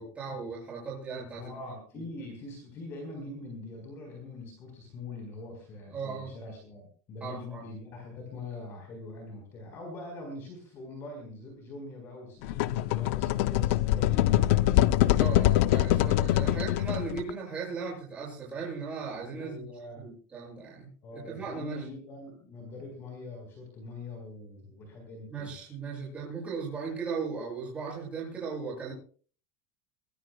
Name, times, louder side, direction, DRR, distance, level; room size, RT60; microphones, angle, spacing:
voice 1, 0.0-1.5 5.9-6.3 7.2-7.6 15.2-19.6 20.0-21.9 25.3-28.9, right 5 dB, 15° right, -3 dB, 7.4 m, -37 dB
voice 2, 1.3-15.3 19.3-20.1 21.0-25.6, left 2 dB, 30° left, 2 dB, 4.4 m, -43 dB
sound 1, 12.4-17.3, left 14 dB, 55° left, 0.6 m, -24 dB
23.0 x 20.0 x 2.3 m, 0.43 s
supercardioid pair, 180°, 8 cm